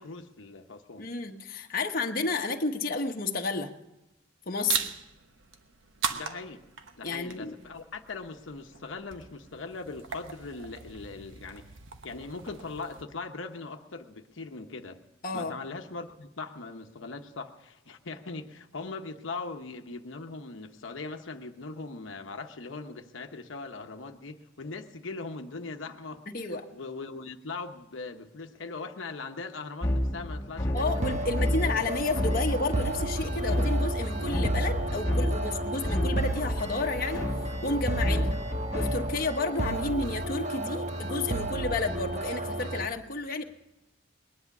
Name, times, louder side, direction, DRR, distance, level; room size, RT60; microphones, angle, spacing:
voice 1, 0.0-1.1 6.1-6.6 6.9-11.7 12.0-15.0 15.3-31.3 38.1-38.3, left 3 dB, 80° left, 5 dB, 0.9 m, -40 dB
voice 2, 1.0-3.7 4.5-4.9 7.0-7.5 15.2-15.6 26.3-26.7 30.7-37.4 37.6-38.4 38.7-43.4, left 3 dB, 50° left, 3 dB, 1.1 m, -31 dB
sound 1, 4.7-13.0, right 7 dB, 85° right, 1.1 m, -39 dB
sound 2, 29.8-39.3, equal, 20° left, 1.8 m, -30 dB
sound 3, 30.8-42.9, right 1 dB, 35° right, 1.2 m, -33 dB
20.5 x 10.5 x 6.0 m, 0.95 s
head